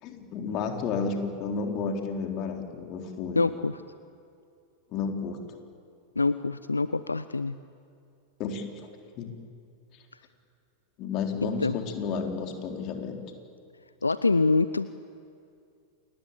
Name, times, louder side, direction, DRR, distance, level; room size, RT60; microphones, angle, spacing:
voice 1, 0.0-3.5 4.9-5.4 8.4-8.7 9.2-9.3 11.0-13.2, left 5 dB, 40° left, 3 dB, 3.7 m, -31 dB
voice 2, 3.4-3.8 6.2-7.6 11.6-11.8 14.0-14.9, left 3 dB, 80° left, 14 dB, 0.5 m, -25 dB
28.5 x 21.0 x 8.5 m, 2.4 s
figure-of-eight pair, 90°, 0 cm